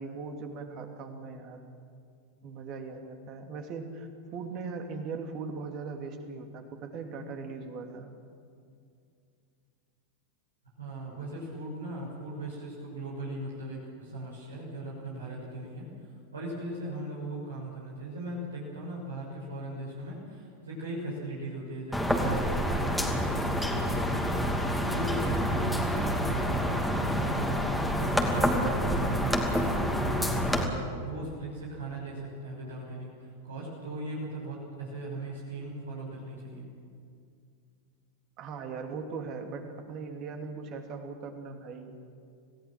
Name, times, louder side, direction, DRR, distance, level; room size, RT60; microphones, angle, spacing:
voice 1, 0.0-1.7 2.4-8.1 38.4-41.9, right 4 dB, 35° right, 5 dB, 2.8 m, -39 dB
voice 2, 10.8-15.9 16.3-36.7, right 2 dB, 70° right, -5 dB, 6.2 m, -38 dB
sound 1, 21.9-30.7, equal, ahead, 2.6 m, -28 dB
27.5 x 17.5 x 7.6 m, 2.4 s
figure-of-eight pair, 90°, 0 cm